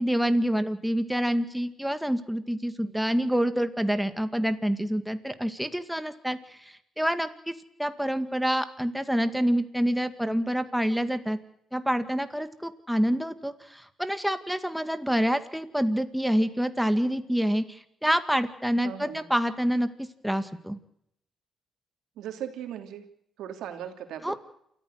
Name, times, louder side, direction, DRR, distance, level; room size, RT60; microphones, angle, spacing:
voice 1, 0.0-7.5 7.8-11.4 11.7-20.8 24.2-24.4, equal, ahead, 9 dB, 2.1 m, -27 dB
voice 2, 18.8-19.2 22.2-23.0 23.4-24.3, right 10 dB, 85° right, 6 dB, 2.9 m, -38 dB
28.5 x 14.0 x 6.5 m, 0.73 s
cardioid pair, 75°, 0 cm